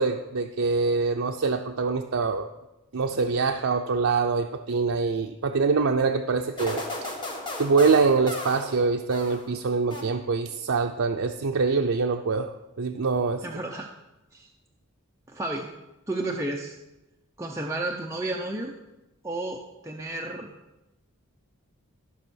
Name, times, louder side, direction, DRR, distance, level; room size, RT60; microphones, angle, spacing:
voice 1, 0.0-2.5 2.9-6.8 7.6-12.5 12.8-13.4, right 4 dB, 65° right, 3 dB, 0.5 m, -24 dB
sound 1, 6.6-9.5 9.9-10.6, left 2 dB, 20° left, 1.6 m, -35 dB
voice 2, 13.4-13.9 14.3-14.5 15.3-15.7 16.1-16.8 17.4-18.7 19.2-20.5, right 2 dB, 15° right, 0 dB, 0.6 m, -32 dB
13.5 x 5.5 x 6.2 m, 0.97 s
head